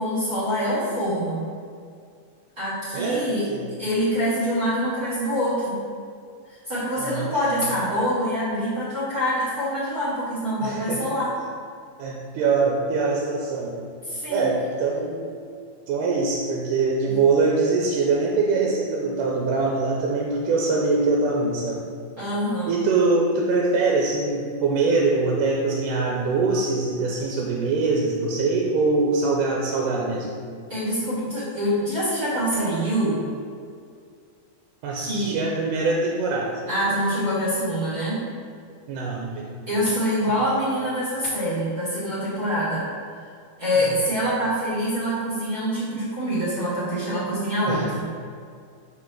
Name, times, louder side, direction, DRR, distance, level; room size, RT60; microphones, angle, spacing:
voice 1, 0.0-1.4 2.6-3.4 3.8-5.7 6.5-11.3 14.0-14.5 17.0-17.1 22.2-22.7 30.7-33.2 34.9-35.3 36.7-38.2 39.7-42.8 43.1-43.3 43.6-48.1, equal, 35° right, -10 dB, 1.6 m, -25 dB
voice 2, 2.9-3.7 7.0-7.4 10.6-11.0 12.0-13.8 14.3-15.2 15.9-21.8 22.7-30.3 34.8-36.5 38.9-39.4 47.7-47.9, right 3 dB, 85° right, -1 dB, 2.3 m, -23 dB
6.4 x 5.5 x 3.7 m, 2.3 s
omnidirectional pair, 3.7 m